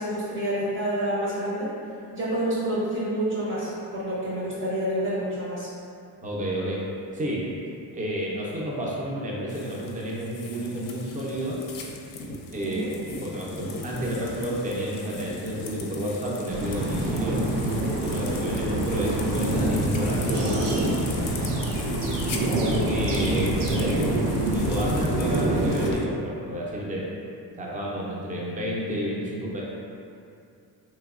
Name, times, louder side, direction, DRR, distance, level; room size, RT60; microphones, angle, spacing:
voice 1, 0.0-1.7 2.1-5.7 12.6-12.9 18.2-18.3, right 1 dB, 50° right, -9 dB, 1.1 m, -28 dB
voice 2, 6.2-6.9 7.1-7.5 7.9-11.6 12.5-12.9 13.2-17.4 18.0-21.0 22.9-27.1 27.6-29.6, equal, 20° right, -5 dB, 0.6 m, -30 dB
sound 1, 9.5-26.0, left 3 dB, 55° left, 0.5 m, -39 dB
sound 2, 16.5-25.9, right 1 dB, 85° right, 0.6 m, -26 dB
3.3 x 3.0 x 2.4 m, 2.5 s
cardioid pair, 85°, 40 cm